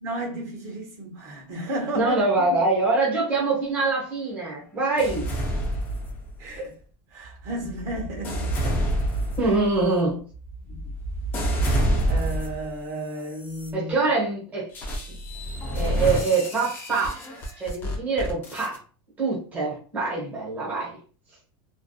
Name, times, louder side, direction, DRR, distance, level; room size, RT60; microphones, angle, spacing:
voice 1, 0.0-2.5 6.4-6.7 7.1-8.8 10.6-10.8 11.5-11.7 12.1-13.9, right 1 dB, 50° right, 0.9 m, -33 dB
voice 2, 1.9-5.3 9.4-10.2 13.7-14.7 15.7-17.2 17.6-18.8 19.2-21.0, right 3 dB, 15° right, 0.8 m, -24 dB
sound 1, 5.0-6.6 7.2-12.7 13.3-13.7 14.7-18.8, right 1 dB, 15° left, 0.3 m, -28 dB
2.5 x 2.2 x 2.3 m
supercardioid pair, 175°, 12 cm